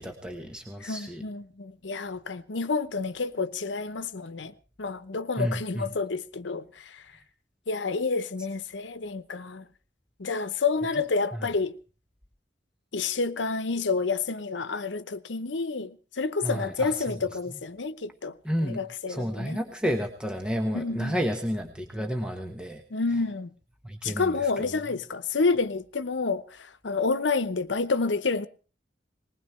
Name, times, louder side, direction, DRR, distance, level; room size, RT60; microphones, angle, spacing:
voice 1, 0.0-1.2 5.4-5.8 16.4-16.9 18.4-18.8 19.1-22.8 23.8-24.5, equal, 5° right, 1.2 m, -31 dB
voice 2, 0.8-7.0 7.7-9.7 10.2-11.7 12.9-18.4 18.6-19.6 20.7-21.2 22.9-23.5 24.0-28.5, left 4 dB, 85° left, 0.9 m, -29 dB
20.0 x 19.5 x 3.3 m
head